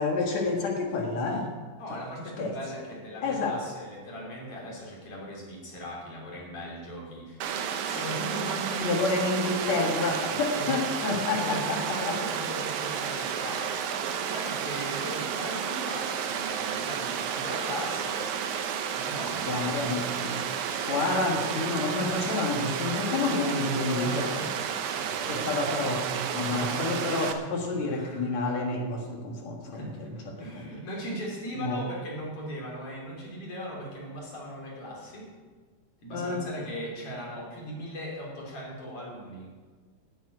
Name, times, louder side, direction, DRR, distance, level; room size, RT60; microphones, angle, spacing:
voice 1, 0.0-1.5 1.9-2.0 2.4-2.5 3.2-3.6 8.8-12.2 19.5-20.5 20.8-24.3 25.3-30.7 31.6-31.8 36.1-36.4, left 3 dB, 60° left, 1 dB, 1.9 m, -29 dB
voice 2, 1.8-9.1 10.5-10.8 11.4-18.3 18.9-20.2 23.6-24.5 24.9-25.6 26.4-27.0 27.7-28.4 29.7-35.3 36.0-39.5, equal, 35° left, -4 dB, 4.0 m, -39 dB
Water, 7.4-27.3, right 8 dB, 90° right, 2.0 m, -31 dB
11.0 x 7.6 x 9.6 m, 1.4 s
omnidirectional pair, 5.4 m